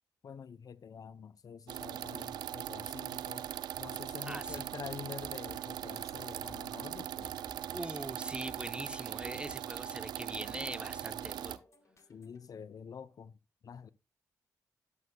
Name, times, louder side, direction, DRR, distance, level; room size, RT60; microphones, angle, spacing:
voice 1, 0.2-3.5 3.8-7.3 12.1-13.4 13.6-13.9, left 6 dB, 60° left, 0.6 m, -47 dB
sound 1, 1.7-11.6, right 11 dB, 85° right, 0.4 m, -40 dB
voice 2, 4.3-4.6 7.7-11.6, right 1 dB, 15° right, 0.7 m, -42 dB
sound 2, 4.5-12.5, left 4 dB, 45° left, 1.9 m, -60 dB
12.0 x 7.7 x 2.2 m
supercardioid pair, 50°, 7 cm